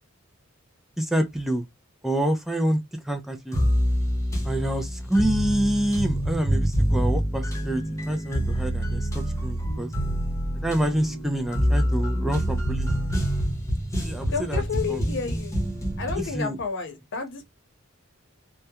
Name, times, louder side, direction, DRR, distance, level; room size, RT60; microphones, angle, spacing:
voice 1, 1.0-1.6 2.0-3.6 4.4-9.9 10.6-12.9 14.0-14.6 14.9-15.0 16.1-16.6, right 1 dB, ahead, 0.3 m, -27 dB
sound 1, 3.5-16.3, equal, 15° left, 0.7 m, -26 dB
voice 2, 14.3-15.5 16.0-17.5, left 5 dB, 60° left, 0.7 m, -30 dB
2.3 x 2.1 x 2.7 m
head